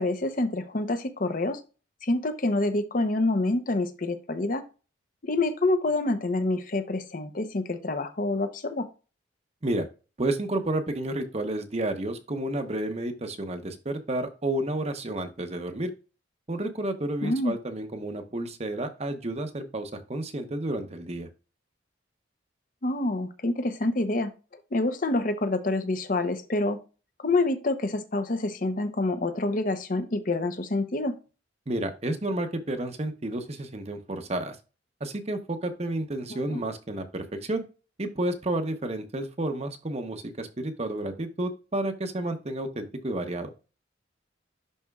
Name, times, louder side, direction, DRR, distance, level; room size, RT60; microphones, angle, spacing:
voice 1, 0.0-1.6 2.0-4.6 5.2-8.9 17.2-17.6 22.8-24.3 24.7-26.8 27.2-31.1 36.3-36.6, left 2 dB, 45° left, 9 dB, 0.7 m, -27 dB
voice 2, 10.2-15.9 16.5-21.3 31.7-34.6 35.0-37.6 38.0-43.5, right 1 dB, 35° right, 7 dB, 0.8 m, -31 dB
11.0 x 4.2 x 2.3 m, 0.32 s
head